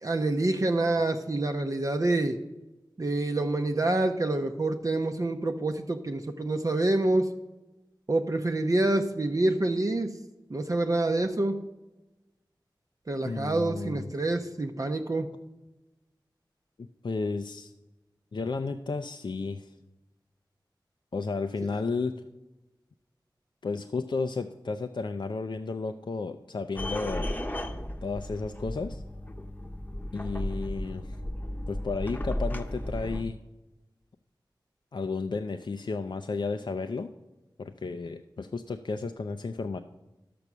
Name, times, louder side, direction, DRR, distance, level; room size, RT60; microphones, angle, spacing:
voice 1, 0.0-2.4 3.0-7.3 8.1-10.2 10.5-11.6 13.1-15.3, right 2 dB, 45° right, 4 dB, 0.7 m, -27 dB
voice 2, 13.2-14.1 16.8-17.7 18.3-19.7 21.1-22.2 23.6-27.4 28.0-29.0 30.1-31.2 31.7-33.4 34.9-37.1 37.6-39.8, left 4 dB, 70° left, 7 dB, 0.5 m, -33 dB
sound 1, 26.8-33.2, left 1 dB, 20° left, 0.9 m, -34 dB
11.5 x 6.9 x 6.1 m, 1.0 s
wide cardioid pair, 60°, 8 cm